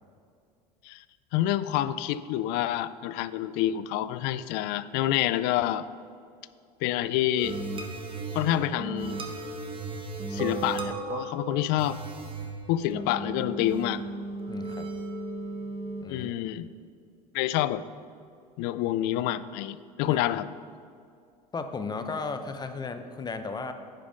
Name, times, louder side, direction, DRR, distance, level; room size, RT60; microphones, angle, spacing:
voice 1, 1.3-5.9 6.8-7.6 8.3-9.2 10.3-12.0 12.7-14.0 16.1-16.7 17.3-17.8 18.6-20.5, left 13 dB, 55° left, 16 dB, 0.4 m, -27 dB
sound 1, 7.4-16.0, right 3 dB, 25° right, 1.3 m, -35 dB
voice 2, 14.5-14.9 16.0-16.3 20.1-20.2 21.5-23.7, left 4 dB, 20° left, 8 dB, 0.7 m, -35 dB
9.9 x 5.1 x 5.1 m, 2.3 s
hypercardioid pair, 80°, 20 cm